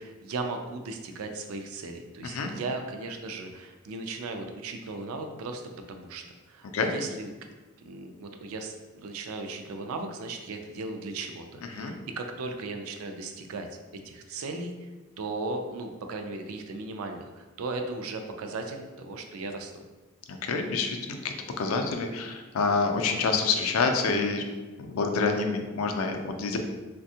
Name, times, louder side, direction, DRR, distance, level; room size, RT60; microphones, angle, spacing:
voice 1, 0.0-5.6 5.9-6.2 6.5-7.3 7.8-13.7 14.0-14.7 15.2-19.8, right 3 dB, 85° right, 5 dB, 0.4 m, -36 dB
voice 2, 20.3-24.4 24.8-26.6, left 4 dB, 85° left, 5 dB, 0.4 m, -27 dB
3.4 x 2.2 x 2.7 m, 1.2 s
head